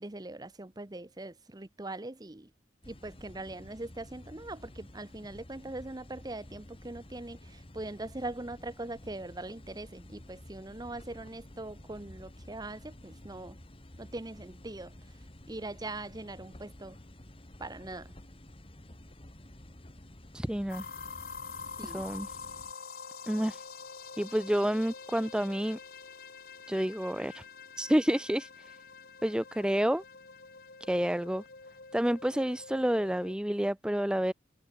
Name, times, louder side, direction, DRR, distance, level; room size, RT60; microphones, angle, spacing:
voice 1, 0.0-2.5 2.9-13.6 14.0-14.9 15.5-17.0 17.6-18.1 21.8-22.1, right 2 dB, 20° right, 0.8 m, -41 dB
sound 1, 2.8-22.7, left 1 dB, 30° left, 2.0 m, -51 dB
voice 2, 20.3-20.8 21.8-22.3 23.3-23.6 24.2-25.8 26.7-27.4 27.8-28.8 29.2-30.0 30.9-31.4 31.9-34.3, equal, 5° right, 0.5 m, -29 dB
sound 2, 20.7-33.3, left 5 dB, 50° left, 2.1 m, -46 dB
head